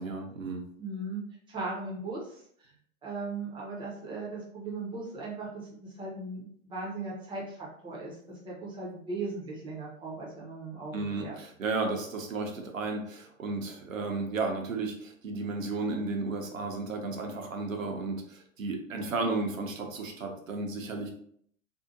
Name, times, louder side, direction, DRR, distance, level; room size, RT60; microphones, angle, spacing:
voice 1, 0.0-0.7 10.9-21.1, right 3 dB, 70° right, 3 dB, 0.7 m, -33 dB
voice 2, 0.8-2.7 3.0-10.9 11.2-11.3 19.4-19.6, right 3 dB, 10° right, -4 dB, 0.6 m, -38 dB
2.7 x 2.4 x 2.4 m, 0.64 s
figure-of-eight pair, 95°, 41 cm